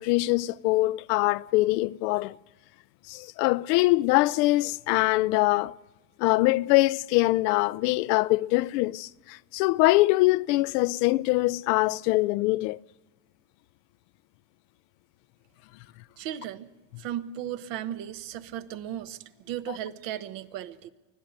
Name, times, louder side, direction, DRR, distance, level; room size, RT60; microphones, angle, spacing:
voice 1, 0.0-2.4 3.1-5.7 6.2-12.8, left 20 dB, 80° left, 0.6 m, -23 dB
voice 2, 16.2-16.7 17.0-20.9, right 11 dB, 65° right, 1.3 m, -36 dB
24.5 x 16.5 x 6.6 m
supercardioid pair, 115°, 47 cm